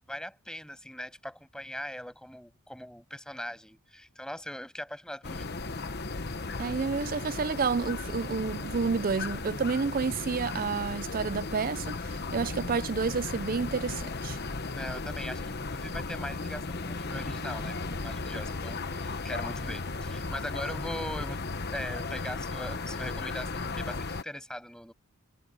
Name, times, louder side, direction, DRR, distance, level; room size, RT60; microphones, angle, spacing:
voice 1, 0.1-5.5 14.7-21.4 21.7-24.9, equal, 5° left, 7.7 m, -40 dB
sound 1, 5.2-24.2, left 3 dB, 50° left, 1.2 m, -35 dB
voice 2, 6.6-14.4, right 5 dB, 40° right, 0.4 m, -30 dB
head